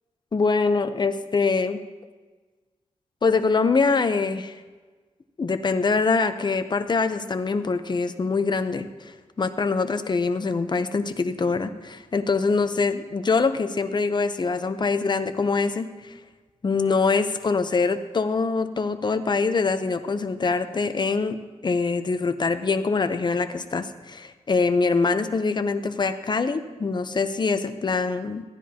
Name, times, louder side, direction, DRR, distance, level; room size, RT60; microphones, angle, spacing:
voice 1, 0.3-1.8 3.2-4.6 5.4-9.1 9.4-16.1 16.6-21.4 21.6-28.4, left 4 dB, 40° left, 10 dB, 0.7 m, -24 dB
15.0 x 9.9 x 2.9 m, 1.3 s
cardioid pair, 80°, 12 cm